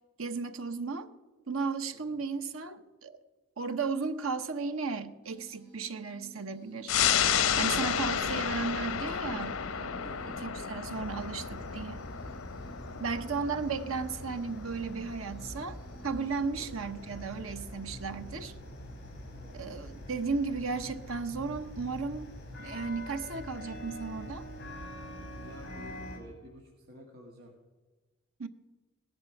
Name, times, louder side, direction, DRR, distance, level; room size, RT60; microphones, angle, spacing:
voice 1, 0.2-1.1 1.5-3.2 3.6-6.9 7.6-10.0 10.4-12.0 13.0-15.8 16.0-18.5 19.5-22.3 22.6-24.4 28.4-28.5, right 4 dB, 90° right, 9 dB, 1.0 m, -35 dB
voice 2, 1.9-2.2 10.0-10.4 12.9-13.2 16.6-16.9 19.4-19.7 25.4-27.5, equal, 50° right, -1 dB, 1.8 m, -51 dB
sound 1, 5.2-16.3, right 1 dB, 5° right, 5.5 m, -56 dB
sound 2, 6.9-17.9 18.2-18.3, left 8 dB, 85° left, 0.8 m, -32 dB
sound 3, 10.8-26.2, left 1 dB, 55° left, 4.5 m, -44 dB
17.5 x 11.0 x 5.8 m, 1.3 s
head